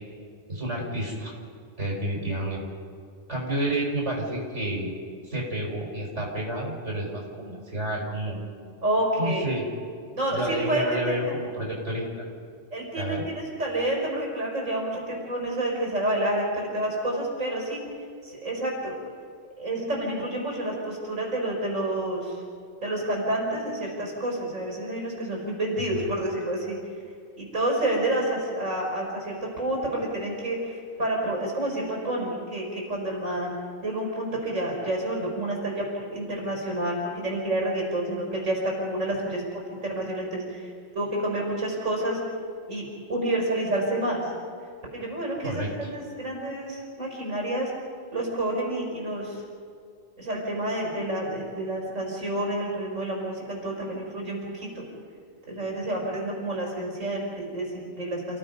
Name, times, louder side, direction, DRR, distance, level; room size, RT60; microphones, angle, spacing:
voice 1, 0.5-1.3 1.8-2.6 3.3-4.9 5.2-8.4 9.2-9.7 10.3-12.3 13.0-13.2 25.9-26.1 45.4-45.9, right 1 dB, 60° right, -3 dB, 5.3 m, -30 dB
voice 2, 8.8-9.6 10.1-11.3 12.7-17.8 18.2-19.0 19.6-22.4 22.8-26.8 27.4-33.5 33.8-39.4 39.7-42.2 42.7-44.3 44.9-47.7 48.1-49.4 50.2-54.9 55.5-58.4, right 1 dB, 80° right, -2 dB, 5.3 m, -29 dB
30.0 x 17.0 x 5.6 m, 2.3 s
omnidirectional pair, 1.3 m